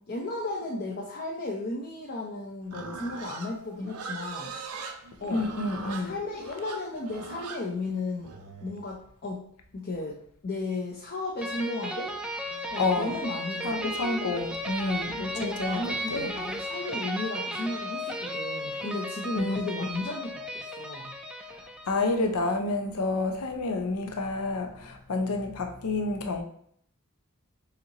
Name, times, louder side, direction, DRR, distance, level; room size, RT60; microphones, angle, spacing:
voice 1, 0.1-4.6 5.2-5.5 6.0-8.3 8.6-9.4 9.7-12.2 12.7-14.0 15.3-21.1, left 2 dB, 45° left, 0.5 m, -34 dB
Livestock farm animals working animals, 2.7-8.7, right 5 dB, 85° right, 0.6 m, -40 dB
voice 2, 5.3-6.1 12.8-13.2 13.6-16.3 19.4-19.6 21.9-26.4, left 3 dB, 85° left, 0.6 m, -29 dB
sound 1, 11.4-22.2, equal, 5° right, 0.3 m, -35 dB
4.3 x 2.6 x 3.9 m
head